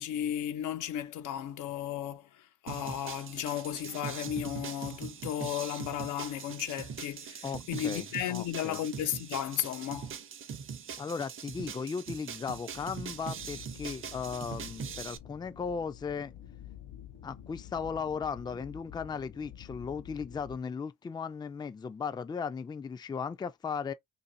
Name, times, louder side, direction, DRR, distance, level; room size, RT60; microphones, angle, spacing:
voice 1, 0.0-10.1, left 11 dB, 85° left, 0.7 m, -35 dB
sound 1, 2.7-15.2, right 6 dB, 45° right, 0.6 m, -42 dB
sound 2, 3.9-7.0, right 7 dB, 70° right, 0.8 m, -60 dB
voice 2, 7.4-8.8 11.0-16.3 17.2-23.9, left 6 dB, 15° left, 0.3 m, -37 dB
sound 3, 12.7-20.6, left 10 dB, 60° left, 1.0 m, -49 dB
2.7 x 2.7 x 4.0 m
cardioid pair, 90°, 30 cm